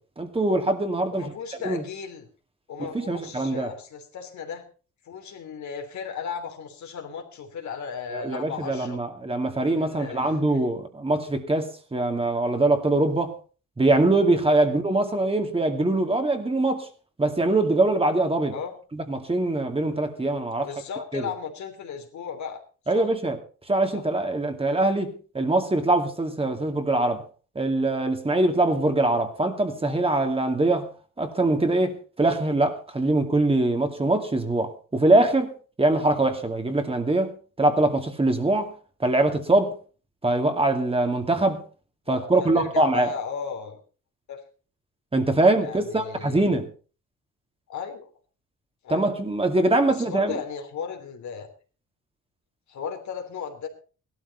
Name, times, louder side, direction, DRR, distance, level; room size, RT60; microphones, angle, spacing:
voice 1, 0.2-1.3 1.6-1.8 2.9-3.7 8.1-13.3 13.8-16.9 17.2-18.5 18.9-20.7 21.1-21.2 22.9-23.4 23.7-27.2 27.6-30.9 31.2-35.5 35.8-38.7 39.0-39.7 40.2-41.6 42.1-43.1 45.1-46.7 48.9-50.4, right 2 dB, 20° right, 2.4 m, -23 dB
voice 2, 1.1-2.3 2.7-4.6 5.0-9.0 9.6-10.6 14.6-14.8 18.5-18.8 20.6-22.6 22.9-23.1 23.9-24.0 36.2-36.3 42.1-43.8 44.3-44.4 45.6-46.5 47.7-48.1 48.8-49.1 49.9-51.5 52.7-53.7, left 6 dB, 70° left, 3.1 m, -35 dB
16.5 x 12.5 x 4.2 m
cardioid pair, 90°, 30 cm